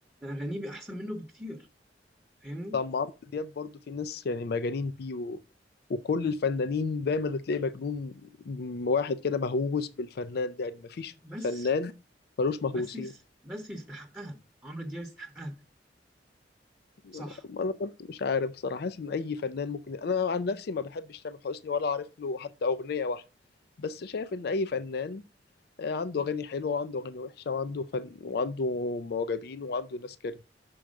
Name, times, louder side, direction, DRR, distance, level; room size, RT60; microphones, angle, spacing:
voice 1, 0.2-1.7 2.4-2.8 11.2-11.7 12.7-13.2 13.4-14.4 14.6-15.5 17.1-17.4, equal, 10° right, 0.9 m, -39 dB
voice 2, 2.7-5.4 5.9-11.1 11.4-11.9 12.4-13.1 17.0-23.2 23.8-25.2 25.8-30.4, left 4 dB, 60° left, 0.4 m, -31 dB
6.2 x 4.6 x 6.3 m
head